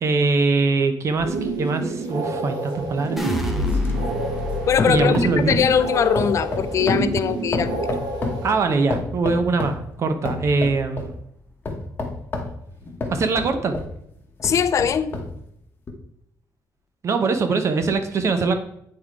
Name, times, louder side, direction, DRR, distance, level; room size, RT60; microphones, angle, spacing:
voice 1, 0.0-3.2 4.9-5.6 8.4-11.2 13.1-13.8 17.0-18.5, right 4 dB, 40° right, 8 dB, 0.7 m, -22 dB
sound 1, 1.2-4.5 4.8-5.8 6.2-8.5 8.9-9.8 10.3-11.1 11.7-13.9 14.4-15.3 15.9-16.0, left 3 dB, 25° left, 1.0 m, -29 dB
sound 2, 1.2-8.5, right 3 dB, 85° right, 1.1 m, -29 dB
sound 3, 3.2-9.3 9.7-10.3, left 2 dB, 5° right, 0.7 m, -30 dB
voice 2, 4.7-7.9 14.4-15.1, left 8 dB, 45° left, 13 dB, 0.3 m, -21 dB
8.6 x 3.7 x 4.6 m, 0.74 s
cardioid pair, 165°, 7 cm